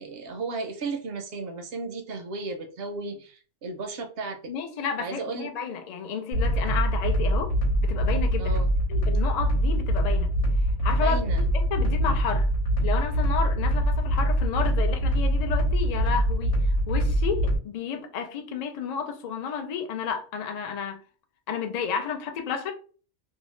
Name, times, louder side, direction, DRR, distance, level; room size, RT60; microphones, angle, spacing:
voice 1, 0.0-4.4 5.0-5.5 8.4-8.7 10.9-11.4, right 3 dB, 65° right, 0.6 m, -34 dB
voice 2, 4.5-7.5 7.8-8.6 8.9-10.3 10.8-11.2 11.5-12.5 12.8-16.6 16.9-21.0 21.5-22.7, left 6 dB, 75° left, 0.3 m, -31 dB
sound 1, 6.3-17.6, equal, 60° left, 1.1 m, -24 dB
2.7 x 2.0 x 3.1 m
omnidirectional pair, 1.4 m